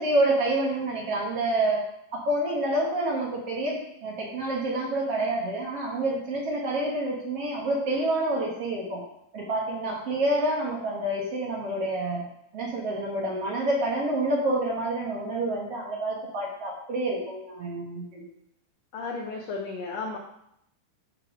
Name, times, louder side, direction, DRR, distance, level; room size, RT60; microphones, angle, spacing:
voice 1, 0.0-1.8 2.1-9.0 9.3-12.3 12.5-18.2, right 1 dB, 50° right, -3 dB, 2.1 m, -28 dB
voice 2, 18.9-20.2, left 4 dB, 80° left, 1 dB, 1.5 m, -33 dB
11.0 x 4.8 x 4.8 m, 0.78 s
omnidirectional pair, 4.2 m